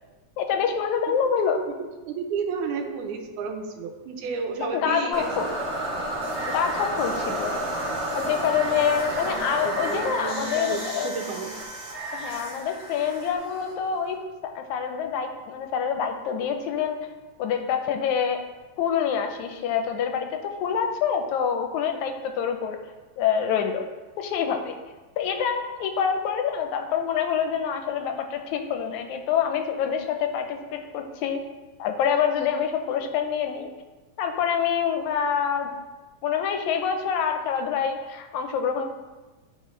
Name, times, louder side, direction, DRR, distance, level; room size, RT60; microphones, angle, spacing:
voice 1, 0.4-1.6 4.6-5.5 6.5-7.6 8.1-11.1 12.1-17.0 17.4-18.4 18.8-22.8 23.2-23.8 24.2-24.7 25.2-31.4 31.8-33.7 34.2-35.7 36.2-38.8, left 7 dB, 80° left, 5 dB, 1.9 m, -26 dB
voice 2, 1.1-5.5 9.2-11.5, right 5 dB, 90° right, 4 dB, 2.2 m, -33 dB
sound 1, 5.1-14.1, right 1 dB, 45° right, 1.6 m, -31 dB
12.0 x 4.0 x 3.1 m, 1.2 s
omnidirectional pair, 3.5 m